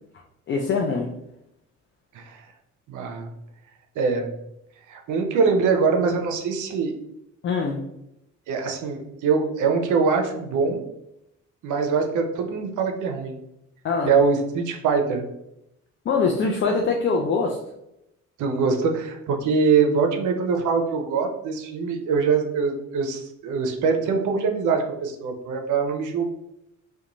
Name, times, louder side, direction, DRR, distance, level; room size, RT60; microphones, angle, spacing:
voice 1, 0.5-1.1 7.4-7.8 13.8-14.1 16.1-17.6, left 4 dB, 40° left, 1 dB, 0.4 m, -23 dB
voice 2, 2.9-3.3 4.0-4.3 4.9-6.9 8.5-10.8 11.6-13.4 14.1-15.3 18.4-26.3, right 5 dB, 80° right, 4 dB, 0.6 m, -23 dB
2.5 x 2.2 x 2.9 m, 0.83 s
cardioid pair, 90°, 30 cm